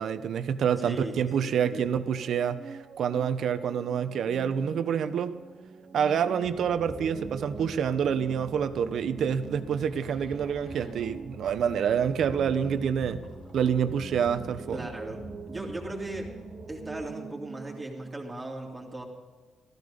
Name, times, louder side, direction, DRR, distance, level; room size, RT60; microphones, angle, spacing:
voice 1, 0.0-5.4 5.9-13.2 13.5-14.9, right 7 dB, 65° right, 11 dB, 1.0 m, -27 dB
voice 2, 0.8-1.8 14.7-16.3 16.7-19.0, right 2 dB, 15° right, -2 dB, 3.0 m, -38 dB
sound 1, 1.9-18.1, right 5 dB, 40° right, 0.8 m, -45 dB
sound 2, 6.4-17.0, left 1 dB, 60° left, 5.0 m, -47 dB
14.5 x 13.5 x 5.2 m, 1.5 s
cardioid pair, 90°, 0 cm